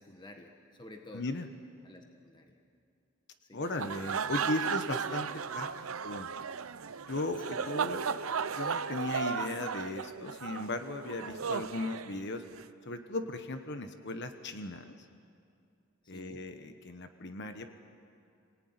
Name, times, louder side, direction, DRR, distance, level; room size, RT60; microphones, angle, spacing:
voice 1, 0.0-1.3 1.8-2.6 3.4-3.6 7.5-7.9 16.0-16.5, left 1 dB, 20° left, 3 dB, 1.5 m, -52 dB
voice 2, 1.1-1.5 3.5-5.7 6.0-6.3 7.1-8.2 8.5-12.4 12.8-15.0 16.1-17.7, left 2 dB, 55° left, 7 dB, 1.2 m, -37 dB
sound 1, 3.6-12.7, right 6 dB, 85° right, 0.7 m, -35 dB
28.0 x 19.0 x 9.6 m, 2.4 s
head